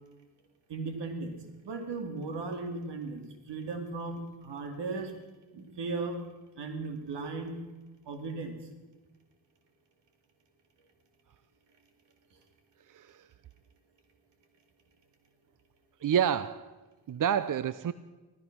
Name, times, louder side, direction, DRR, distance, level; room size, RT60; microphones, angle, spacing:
voice 1, 0.7-1.3 1.6-5.1 5.5-6.2 6.6-7.6 8.1-8.5 12.3-12.4, right 3 dB, 80° right, 6 dB, 2.5 m, -36 dB
voice 2, 12.9-13.3 16.0-16.8 17.1-17.9, right 9 dB, 50° right, 15 dB, 0.7 m, -29 dB
16.0 x 13.5 x 6.1 m, 1.2 s
cardioid pair, 60°, 41 cm